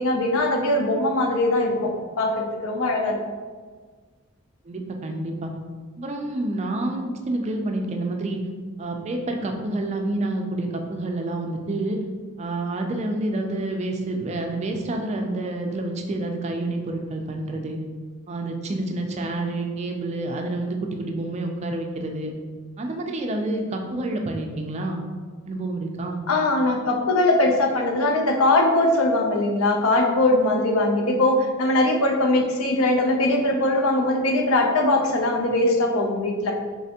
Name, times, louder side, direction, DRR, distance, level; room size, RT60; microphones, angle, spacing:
voice 1, 0.0-3.2 26.3-36.5, left 2 dB, 70° left, 2 dB, 0.5 m, -21 dB
voice 2, 4.6-5.5 6.0-8.4 8.8-12.0 12.4-17.8 18.3-22.3 22.8-25.0 25.5-26.2, right 2 dB, 30° right, 3 dB, 0.3 m, -28 dB
3.3 x 3.3 x 2.8 m, 1.5 s
head